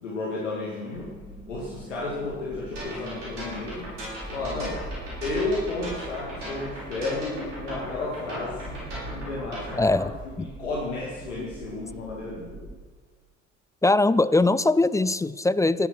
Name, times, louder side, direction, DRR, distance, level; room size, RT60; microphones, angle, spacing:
voice 1, 0.0-1.1 1.5-3.9 4.3-4.8 5.2-8.8 9.1-9.8 10.2-12.6, left 3 dB, 80° left, -5 dB, 2.6 m, -32 dB
sound 1, 0.9-12.8, right 2 dB, 10° right, 4.2 m, -42 dB
sound 2, 2.8-10.1, equal, 75° right, 6.3 m, -37 dB
voice 2, 9.8-10.1 10.4-10.5 13.8-15.9, left 2 dB, 10° left, 16 dB, 0.4 m, -21 dB
17.0 x 11.0 x 6.2 m, 1.4 s
figure-of-eight pair, 50°, 37 cm